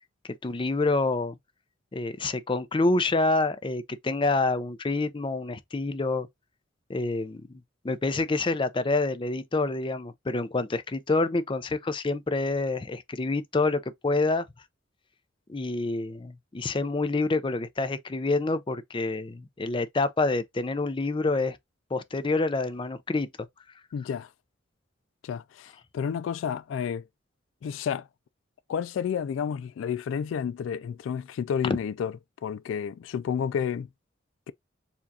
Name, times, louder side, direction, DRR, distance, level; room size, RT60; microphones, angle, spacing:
voice 1, 0.4-1.3 1.9-6.3 6.9-14.4 15.5-21.6 21.9-23.3 31.6-31.8, left 3 dB, 25° left, 0.5 m, -27 dB
voice 2, 23.9-24.3 25.2-27.1 27.6-28.1 28.7-32.1 32.4-33.9, left 7 dB, 80° left, 0.3 m, -30 dB
7.1 x 2.4 x 2.7 m
head